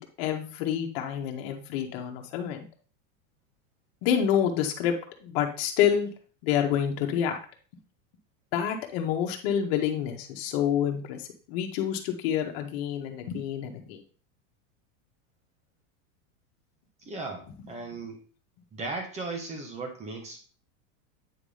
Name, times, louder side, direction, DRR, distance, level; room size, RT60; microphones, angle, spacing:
voice 1, 0.0-2.7 4.0-6.1 6.4-7.4 8.5-11.2 11.5-14.0, left 9 dB, 45° left, 3 dB, 1.6 m, -28 dB
voice 2, 17.0-18.2 18.7-20.4, right 3 dB, 15° right, 4 dB, 1.4 m, -37 dB
9.1 x 3.8 x 5.0 m, 0.40 s
supercardioid pair, 170°, 41 cm